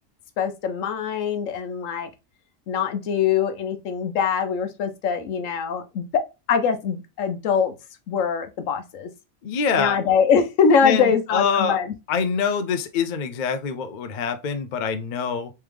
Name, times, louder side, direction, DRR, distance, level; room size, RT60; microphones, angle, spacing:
voice 1, 0.4-2.1 2.7-6.2 6.5-7.7 8.1-9.1 9.8-11.9, left 6 dB, 75° left, 1.1 m, -23 dB
voice 2, 9.4-10.0 10.8-11.8 12.1-15.5, left 6 dB, 60° left, 0.5 m, -25 dB
3.4 x 3.2 x 3.2 m
omnidirectional pair, 1.3 m